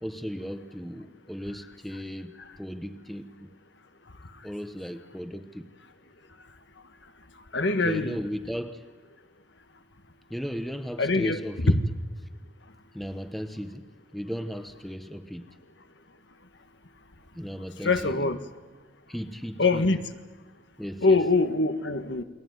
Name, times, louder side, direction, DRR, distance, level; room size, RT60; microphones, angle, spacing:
voice 1, 0.0-3.5 4.4-5.7 7.8-8.8 10.3-11.8 12.9-13.9 14.1-15.5 17.3-18.3 19.1-19.9 20.8-21.2, equal, ahead, 9 dB, 1.0 m, -36 dB
voice 2, 7.5-8.2 11.0-11.4 17.8-18.4 19.6-20.0 21.0-22.2, left 3 dB, 65° left, 9 dB, 1.5 m, -23 dB
29.0 x 22.0 x 9.4 m, 1.3 s
head